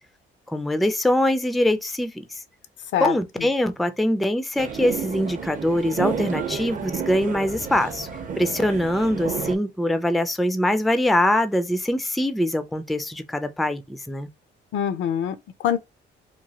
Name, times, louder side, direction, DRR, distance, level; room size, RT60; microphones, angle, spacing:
voice 1, 0.5-2.1 3.0-8.1 8.4-14.3, left 1 dB, ahead, 0.3 m, -23 dB
voice 2, 2.9-3.5 14.7-15.8, left 9 dB, 70° left, 0.5 m, -25 dB
sound 1, 4.6-9.6, right 6 dB, 40° right, 0.6 m, -31 dB
3.0 x 2.2 x 2.7 m
cardioid pair, 90°, 20 cm